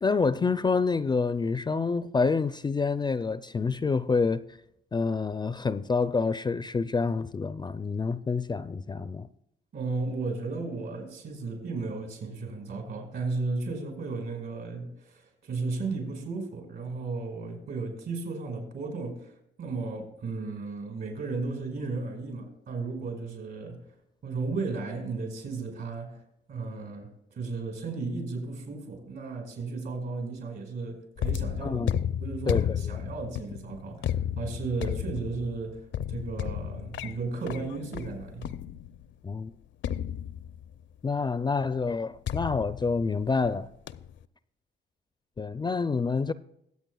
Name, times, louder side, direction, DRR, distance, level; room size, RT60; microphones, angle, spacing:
voice 1, 0.0-4.6 4.9-9.3 31.6-32.0 32.5-33.0 39.2-39.5 41.0-43.7 45.4-46.3, left 4 dB, 20° left, 0.4 m, -27 dB
voice 2, 9.7-23.9 24.2-26.2 26.5-31.9 32.2-38.5, right 3 dB, 65° right, 5.0 m, -34 dB
sound 1, 31.2-39.1 39.8-40.8 42.3-43.5 43.9-44.2, left 10 dB, 70° left, 0.5 m, -33 dB
23.0 x 8.3 x 2.3 m
cardioid pair, 90°, 20 cm